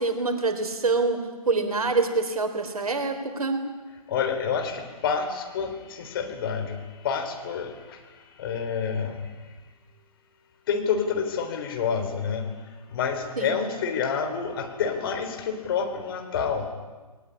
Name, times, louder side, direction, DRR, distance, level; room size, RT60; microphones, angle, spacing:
voice 1, 0.0-3.6 13.4-13.5, right 3 dB, 65° right, 6 dB, 4.0 m, -26 dB
voice 2, 4.1-6.8 7.0-7.7 8.4-9.2 10.7-12.5 12.9-16.7, left 6 dB, 35° left, 6 dB, 3.6 m, -28 dB
20.5 x 19.0 x 9.9 m, 1.3 s
figure-of-eight pair, 140°, 20 cm